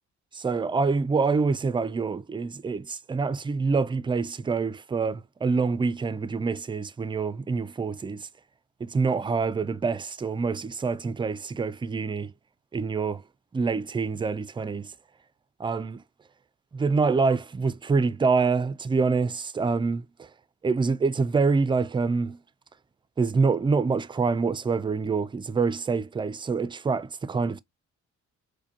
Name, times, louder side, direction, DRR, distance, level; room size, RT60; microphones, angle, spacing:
voice 1, 0.3-8.3 8.8-12.3 12.7-13.2 13.5-14.9 15.6-16.0 16.7-20.3 20.6-22.4 23.2-27.6, right 4 dB, 15° right, 0.3 m, -26 dB
4.8 x 2.1 x 2.7 m
cardioid pair, 90°, 30 cm